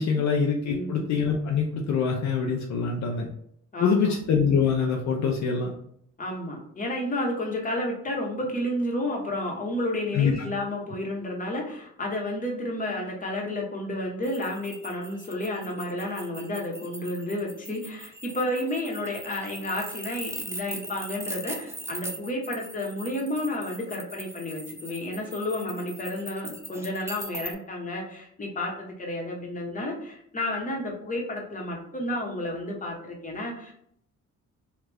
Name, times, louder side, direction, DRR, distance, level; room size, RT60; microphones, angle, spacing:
voice 1, 0.0-3.3 3.8-5.7 10.1-10.3, left 6 dB, 60° left, 0 dB, 0.6 m, -24 dB
voice 2, 0.6-1.0 3.7-4.0 6.2-33.7, left 1 dB, 25° left, -1 dB, 1.1 m, -31 dB
sound 1, 14.2-27.5, right 1 dB, 10° right, 0.5 m, -40 dB
3.2 x 2.4 x 3.4 m, 0.69 s
cardioid pair, 85°, 31 cm